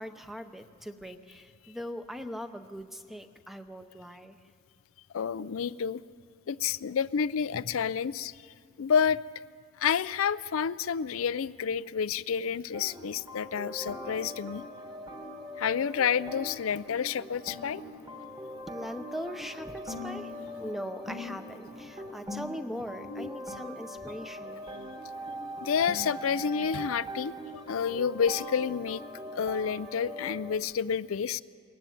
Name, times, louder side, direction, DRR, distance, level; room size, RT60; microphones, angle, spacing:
voice 1, 0.0-4.4 18.7-20.3 20.6-24.7, equal, ahead, 8 dB, 0.7 m, -40 dB
voice 2, 5.1-6.0 6.5-8.3 8.8-9.2 9.8-14.6 15.6-17.8 22.0-22.1 23.1-23.3 25.6-29.0 29.4-31.4, left 7 dB, 80° left, 15 dB, 0.4 m, -29 dB
sound 1, 12.7-30.6, left 1 dB, 20° right, 1.7 m, -41 dB
22.0 x 15.0 x 9.4 m, 2.4 s
head